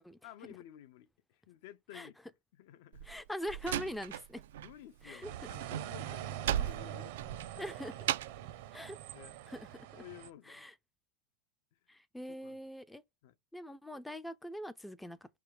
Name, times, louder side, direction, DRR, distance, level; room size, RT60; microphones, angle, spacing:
voice 1, 0.2-2.2 2.5-3.1 4.6-7.8 9.1-9.4 10.0-10.7 12.4-12.6 13.2-13.3, left 12 dB, 60° left, 0.6 m, -53 dB
Slam, 2.9-4.7 5.0-8.5, right 11 dB, 80° right, 0.4 m, -37 dB
voice 2, 3.0-4.4 5.0-5.3 7.6-7.9 8.7-9.0 9.5-10.0 10.5-10.7 11.9-13.0 13.5-15.4, equal, 5° left, 0.4 m, -43 dB
sound 1, 5.2-10.3, right 12 dB, 60° right, 0.7 m, -44 dB
5.7 x 3.4 x 4.9 m
supercardioid pair, 150°, 0 cm